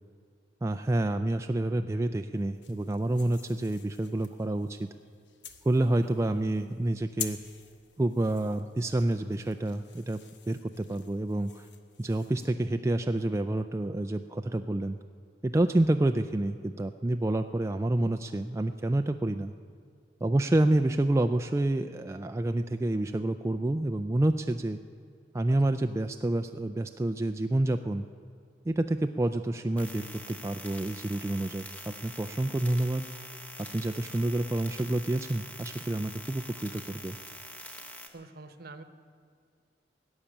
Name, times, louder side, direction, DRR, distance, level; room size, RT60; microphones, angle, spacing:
voice 1, 0.6-4.9 5.6-7.4 8.0-10.2 10.5-11.7 12.0-15.0 15.4-19.5 20.2-24.8 25.3-28.1 28.7-33.3 33.6-37.2, right 1 dB, 15° right, 7 dB, 0.3 m, -28 dB
sound 1, 2.3-12.5, left 8 dB, 75° left, 1.1 m, -47 dB
sound 2, 29.8-38.1, equal, 10° left, 1.0 m, -45 dB
voice 2, 38.1-38.8, right 3 dB, 55° right, 10 dB, 0.9 m, -47 dB
17.0 x 7.2 x 10.0 m, 2.2 s
head